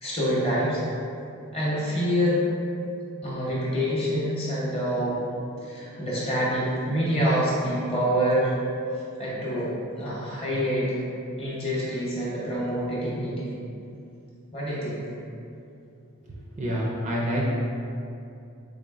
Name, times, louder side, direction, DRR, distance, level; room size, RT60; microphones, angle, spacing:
voice 1, 0.0-0.8 1.5-2.4 3.2-8.5 9.2-11.0 11.4-13.5 14.5-15.1, equal, 25° left, -7 dB, 0.8 m, -26 dB
voice 2, 16.6-17.5, equal, 30° right, -4 dB, 0.4 m, -27 dB
3.7 x 3.4 x 2.4 m, 2.6 s
head